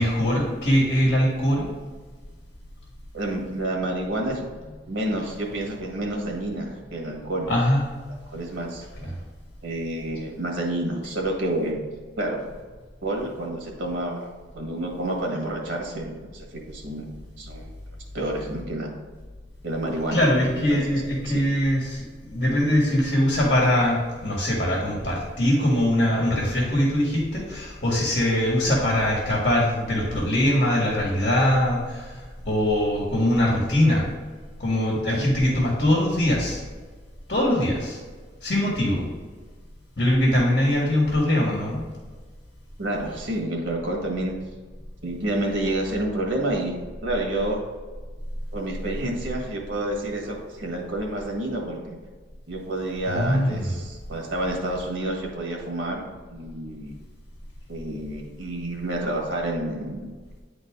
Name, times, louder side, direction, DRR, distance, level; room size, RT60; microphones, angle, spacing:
voice 1, 0.0-1.7 7.5-7.9 20.1-34.1 34.6-36.6 37.3-38.0 38.4-39.0 40.0-41.9 53.1-53.7, left 1 dB, 50° left, -3 dB, 1.7 m, -22 dB
voice 2, 3.1-4.5 4.9-7.5 8.3-8.8 9.6-11.8 12.2-12.4 13.0-14.3 14.5-17.0 17.4-17.7 18.1-18.9 19.6-20.4 20.7-20.8 21.3-21.4 35.1-35.2 42.8-44.3 45.0-47.6 48.5-52.0 52.5-56.9 57.7-60.1, right 1 dB, 90° right, 0 dB, 1.7 m, -29 dB
9.8 x 4.0 x 3.7 m, 1.4 s
head